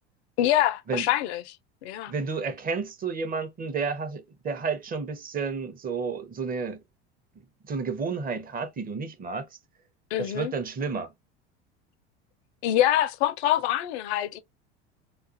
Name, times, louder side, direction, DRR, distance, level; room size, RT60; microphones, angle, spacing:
voice 1, 0.4-1.6 1.8-2.1 10.1-10.5 12.6-14.4, left 12 dB, 70° left, 0.5 m, -25 dB
voice 2, 2.1-6.8 7.7-9.4 10.2-11.1, right 5 dB, 25° right, 0.6 m, -31 dB
2.4 x 2.3 x 2.6 m
hypercardioid pair, 80°, 34 cm